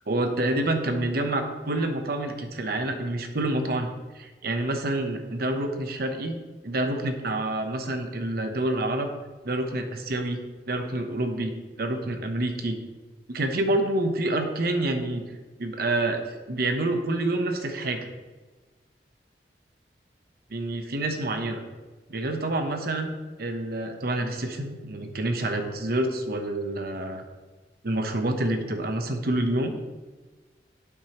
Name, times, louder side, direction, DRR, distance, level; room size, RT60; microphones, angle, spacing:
voice 1, 0.1-3.9 4.1-9.1 9.4-12.8 13.3-15.2 15.6-16.2 16.5-18.1 20.5-21.6 22.1-27.2 27.8-29.8, right 1 dB, 60° right, 5 dB, 0.9 m, -28 dB
8.8 x 8.3 x 3.0 m, 1.3 s
head